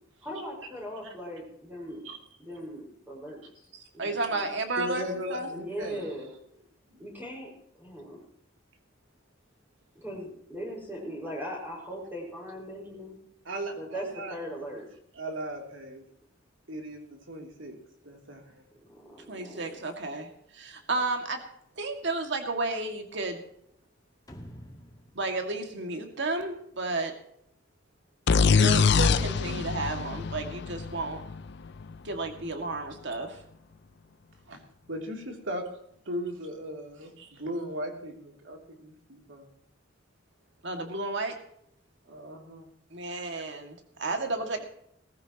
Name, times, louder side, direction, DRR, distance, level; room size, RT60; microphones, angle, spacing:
voice 1, 0.2-2.1 2.4-4.5 5.5-6.3 7.0-7.5 7.8-8.2 10.0-13.2 13.7-14.9 18.9-19.8, equal, 10° right, -2 dB, 5.4 m, -39 dB
voice 2, 3.7-5.0 5.3-5.5 19.3-21.4 21.8-23.4 25.2-27.1 28.4-31.2 32.0-33.4 37.2-37.3 40.6-41.4 42.9-44.6, right 2 dB, 65° right, 4 dB, 2.2 m, -32 dB
voice 3, 4.7-6.1 6.9-7.0 13.4-14.4 14.7-14.8 15.1-16.0 16.7-17.8 18.0-18.6 28.7-28.8 34.5-34.6 34.9-35.7 36.0-39.5 42.1-42.7, equal, 80° right, 2 dB, 3.2 m, -37 dB
sound 1, 24.3-26.8, equal, 20° left, 1.8 m, -49 dB
sound 2, 28.3-32.0, left 5 dB, 65° left, 0.5 m, -24 dB
18.5 x 15.0 x 3.0 m, 0.72 s
head